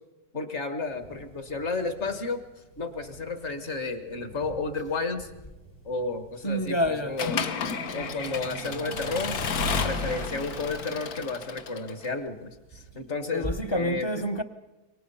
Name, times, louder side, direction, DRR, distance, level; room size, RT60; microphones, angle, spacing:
voice 1, 0.3-2.4 2.8-5.3 5.9-7.4 7.9-9.4 9.7-14.1, left 3 dB, 45° left, 1.7 m, -32 dB
sound 1, 0.8-13.9, right 3 dB, 85° left, 8.8 m, -54 dB
voice 2, 6.4-7.2 13.3-14.4, equal, 25° left, 0.6 m, -28 dB
sound 2, 6.5-11.5, right 6 dB, 45° right, 0.7 m, -43 dB
Accelerating revving vroom / Mechanisms, 7.2-12.1, left 5 dB, 65° left, 1.5 m, -31 dB
27.0 x 24.0 x 5.6 m
omnidirectional pair, 1.8 m